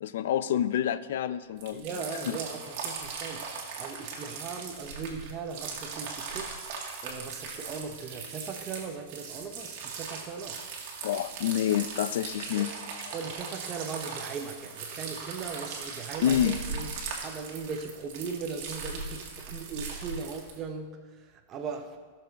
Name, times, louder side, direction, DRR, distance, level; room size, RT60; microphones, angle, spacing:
voice 1, 0.0-1.9 2.3-2.4 11.0-12.7 16.2-16.6, left 10 dB, 70° left, 15 dB, 0.4 m, -27 dB
sound 1, 1.6-20.6, right 5 dB, 50° right, 2.0 m, -39 dB
voice 2, 1.7-3.5 3.8-6.5 7.0-10.6 12.5-12.7 13.1-22.0, right 5 dB, 25° right, 4 dB, 0.8 m, -39 dB
15.0 x 6.6 x 4.0 m, 1.5 s
supercardioid pair, 155°, 0 cm